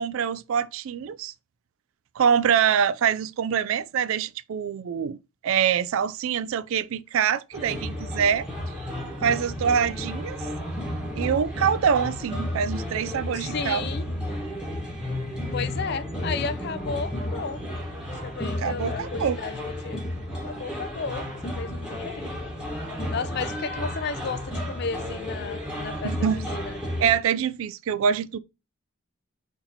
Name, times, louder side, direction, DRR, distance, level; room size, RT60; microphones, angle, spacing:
voice 1, 0.0-1.3 2.2-5.2 5.4-8.5 9.2-10.4 11.2-13.8 18.6-19.4 26.0-26.4 27.0-28.4, right 7 dB, 70° right, 0.3 m, -25 dB
sound 1, 7.5-27.2, left 1 dB, 5° right, 1.2 m, -32 dB
voice 2, 13.3-14.0 15.5-20.0 20.4-22.4 23.1-26.8, left 5 dB, 50° left, 0.4 m, -34 dB
4.0 x 2.8 x 4.1 m
head